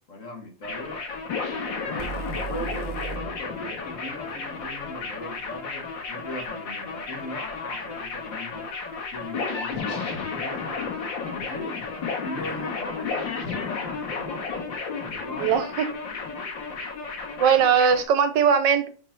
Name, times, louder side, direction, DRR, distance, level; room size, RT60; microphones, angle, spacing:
voice 1, 0.1-1.0 1.5-8.7 9.1-11.8 12.2-14.4 15.0-15.5, left 1 dB, 45° left, 1.9 m, -39 dB
sound 1, 0.6-18.0, left 4 dB, 90° left, 2.5 m, -33 dB
sound 2, 2.0-5.9, right 7 dB, 50° right, 0.5 m, -39 dB
voice 2, 15.4-15.9 17.4-18.9, right 7 dB, 75° right, 1.5 m, -20 dB
5.7 x 4.7 x 5.8 m
omnidirectional pair, 2.0 m